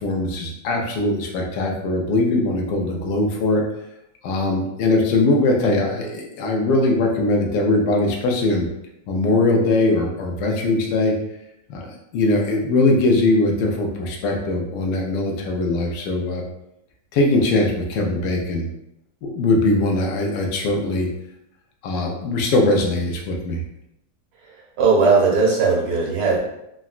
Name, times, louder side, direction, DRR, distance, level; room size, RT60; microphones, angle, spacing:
voice 1, 0.0-3.6 4.2-8.7 9.1-11.2 11.7-16.4 17.1-18.7 19.2-21.1 21.8-23.6, left 2 dB, 90° left, 1 dB, 1.3 m, -21 dB
voice 2, 24.8-26.4, right 4 dB, 80° right, -4 dB, 1.5 m, -17 dB
3.8 x 2.1 x 2.4 m, 0.83 s
omnidirectional pair, 1.8 m